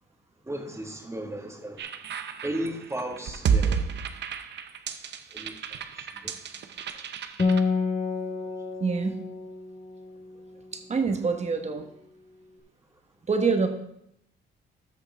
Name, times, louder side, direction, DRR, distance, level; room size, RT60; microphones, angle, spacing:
voice 1, 0.5-1.8 2.4-3.8 5.3-5.5 6.2-6.3, right 1 dB, 15° right, 3 dB, 1.7 m, -34 dB
sound 1, 1.8-7.6, right 7 dB, 60° right, 0.8 m, -30 dB
Acoustic guitar, 7.4-11.1, left 4 dB, 35° left, 1.3 m, -29 dB
voice 2, 8.8-9.1 10.9-11.9 13.3-13.7, right 4 dB, 35° right, 6 dB, 1.3 m, -25 dB
13.0 x 5.8 x 3.5 m, 0.76 s
cardioid pair, 90°, 20 cm